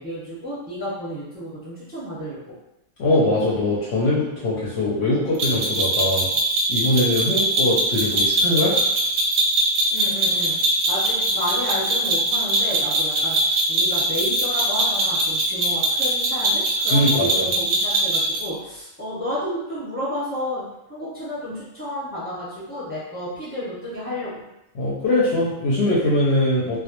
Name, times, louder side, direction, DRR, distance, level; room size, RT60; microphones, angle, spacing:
voice 1, 0.0-2.5 9.9-10.6 10.9-13.4 13.7-20.6 20.9-24.4, left 1 dB, 10° right, -10 dB, 0.7 m, -31 dB
voice 2, 3.0-6.3 6.7-8.7 16.9-17.5 24.8-26.8, left 1 dB, 65° left, -7 dB, 0.7 m, -21 dB
sound 1, 5.4-18.5, right 1 dB, 65° right, 0.7 m, -22 dB
2.1 x 2.1 x 2.8 m, 0.89 s
omnidirectional pair, 1.4 m